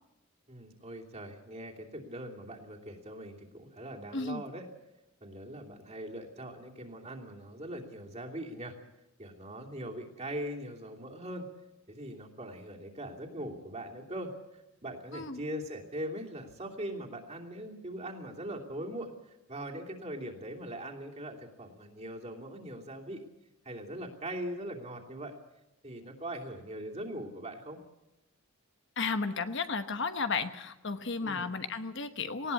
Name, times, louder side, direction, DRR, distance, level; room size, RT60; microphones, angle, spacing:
voice 1, 0.5-4.7 5.2-8.8 9.2-11.5 11.9-23.3 23.6-25.4 25.8-27.8 31.2-31.5, right 1 dB, 30° right, 0 dB, 2.9 m, -41 dB
voice 2, 4.1-4.4 15.1-15.4 29.0-32.5, left 4 dB, 55° left, 9 dB, 1.1 m, -33 dB
19.0 x 18.0 x 8.4 m, 0.94 s
head